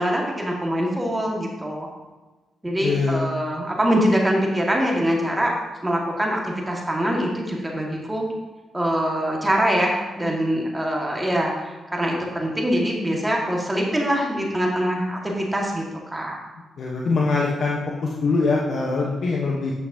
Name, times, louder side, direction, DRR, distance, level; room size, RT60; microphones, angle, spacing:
voice 1, 0.0-1.9 2.6-5.5 5.8-8.3 8.7-16.4, equal, 20° right, -1 dB, 1.6 m, -24 dB
voice 2, 2.8-3.3 16.8-19.7, left 3 dB, 65° left, -2 dB, 0.9 m, -23 dB
9.2 x 6.2 x 2.7 m, 1.2 s
supercardioid pair, 50°, 0 cm